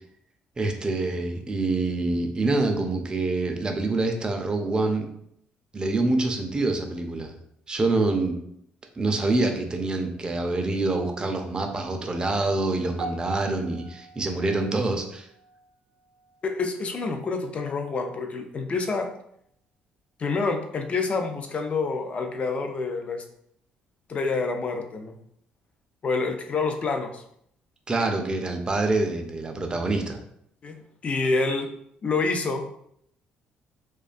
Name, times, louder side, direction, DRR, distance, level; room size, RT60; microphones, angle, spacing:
voice 1, 0.6-5.1 5.7-7.3 7.7-8.4 9.0-15.3 27.9-30.2, right 2 dB, 25° right, 4 dB, 0.4 m, -26 dB
sound 1, 13.0-17.4 17.6-18.0 18.7-18.8, right 3 dB, 90° right, 0.4 m, -44 dB
voice 2, 16.4-19.1 20.2-23.2 24.1-25.2 26.0-27.2 30.6-30.8 31.0-31.7 32.0-32.7, left 4 dB, 40° left, 5 dB, 0.4 m, -27 dB
2.5 x 2.2 x 2.4 m, 0.71 s
cardioid pair, 90°, 3 cm